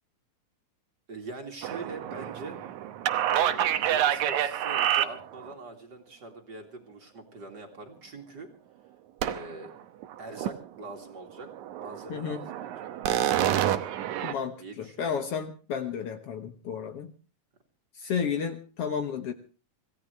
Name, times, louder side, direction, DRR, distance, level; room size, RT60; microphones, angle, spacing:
voice 1, 1.1-2.7 3.3-8.5 9.2-9.7 10.2-11.5 11.8-12.9 14.6-15.2, right 2 dB, 35° right, 3 dB, 2.7 m, -43 dB
sound 1, 1.6-5.5 9.2-9.7 10.0-10.7 11.0-11.1 11.5-14.3, right 11 dB, 85° right, 2.4 m, -28 dB
voice 2, 12.1-12.4 14.2-17.1 18.0-19.3, left 7 dB, 60° left, 7 dB, 2.0 m, -32 dB
26.0 x 16.0 x 3.3 m, 0.37 s
omnidirectional pair, 3.3 m